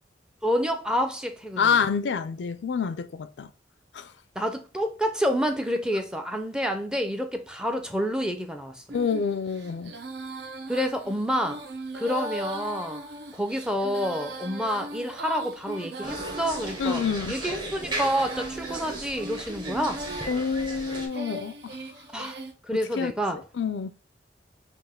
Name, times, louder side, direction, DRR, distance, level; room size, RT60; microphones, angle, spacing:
voice 1, 0.4-1.8 4.4-8.8 10.7-11.6 11.9-13.0 13.3-17.0 17.3-20.0 22.1-23.4, equal, 5° right, 0.5 m, -28 dB
voice 2, 1.6-3.5 3.9-4.1 8.9-9.9 16.8-17.3 20.3-21.8 23.0-23.1 23.5-23.9, left 6 dB, 80° left, 0.4 m, -27 dB
Female singing, 8.9-22.5, right 2 dB, 70° right, 0.7 m, -39 dB
sound 1, 16.0-21.1, right 2 dB, 25° right, 1.0 m, -36 dB
5.5 x 2.5 x 3.5 m
head